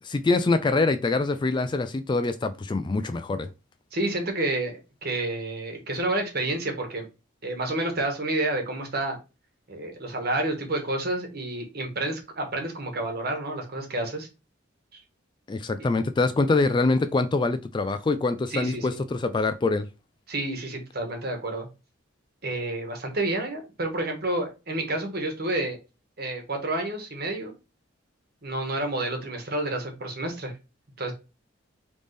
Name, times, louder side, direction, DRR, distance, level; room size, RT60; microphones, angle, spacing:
voice 1, 0.0-3.5 15.5-19.9, left 3 dB, 25° left, 0.3 m, -24 dB
voice 2, 3.9-7.1 7.4-9.2 9.7-14.3 14.9-15.0 18.5-19.0 20.3-21.7 22.4-25.8 26.2-27.5 28.4-30.5 31.0-31.1, right 2 dB, 50° right, 1.4 m, -29 dB
3.9 x 3.4 x 3.3 m
head